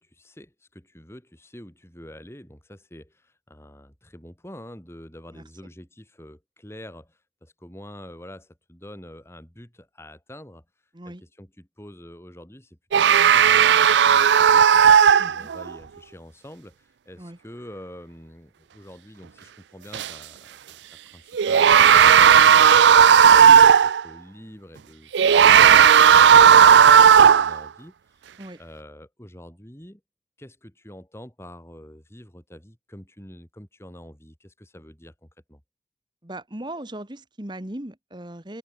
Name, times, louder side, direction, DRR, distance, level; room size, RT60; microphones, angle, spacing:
voice 1, 0.0-10.6 11.0-14.8 15.3-20.8 21.0-23.4 23.7-30.0 30.4-35.6, equal, 15° left, 3.4 m, -46 dB
sound 1, 12.9-15.7 19.9-20.1 21.3-24.0 25.1-27.6, right 8 dB, 90° right, 0.4 m, -13 dB
voice 2, 15.2-15.5 17.2-17.4 28.4-28.6 36.2-38.6, right 1 dB, 25° right, 1.7 m, -38 dB
open air
head